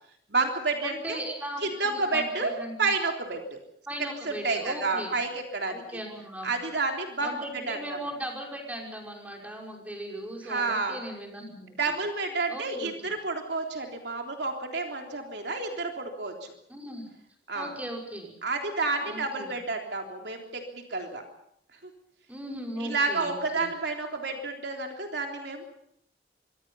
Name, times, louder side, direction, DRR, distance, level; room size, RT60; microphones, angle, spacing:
voice 1, 0.3-1.2 1.6-2.5 2.8-3.6 4.3-6.0 6.4-7.3 7.7-7.8 10.4-11.0 11.8-16.5 17.5-17.7 18.4-21.2 21.8-21.9 22.8-25.7, right 3 dB, 65° right, 3 dB, 3.5 m, -30 dB
voice 2, 0.8-2.9 3.9-5.2 5.7-6.5 7.2-11.9 12.5-12.9 16.7-17.1 17.5-18.3 19.0-19.5 22.3-23.7, right 1 dB, 10° right, 0 dB, 5.6 m, -38 dB
25.5 x 24.5 x 5.6 m, 0.70 s
head